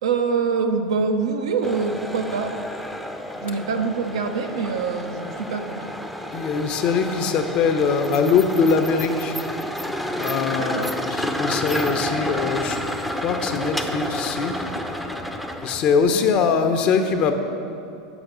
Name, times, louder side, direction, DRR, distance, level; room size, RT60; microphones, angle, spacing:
voice 1, 0.0-2.6 3.4-6.0 10.5-10.9 16.1-16.5, right 5 dB, 80° right, 6 dB, 0.6 m, -25 dB
sound 1, 1.6-16.0, equal, ahead, 0.6 m, -30 dB
voice 2, 6.3-9.4 10.1-12.8 13.2-14.6 15.6-17.3, left 5 dB, 45° left, 6 dB, 0.7 m, -22 dB
6.0 x 5.9 x 6.7 m, 2.5 s
hypercardioid pair, 100°, 3 cm